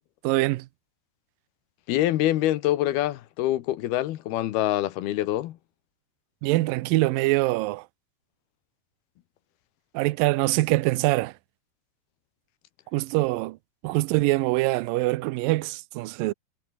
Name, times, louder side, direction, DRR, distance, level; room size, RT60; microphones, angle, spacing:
voice 1, 0.2-0.7 6.4-7.9 9.9-11.3 12.9-13.6 13.8-16.3, right 20 dB, 90° right, 2.0 m, -24 dB
voice 2, 1.9-5.6, left 14 dB, 70° left, 2.9 m, -25 dB
omnidirectional pair, 4.8 m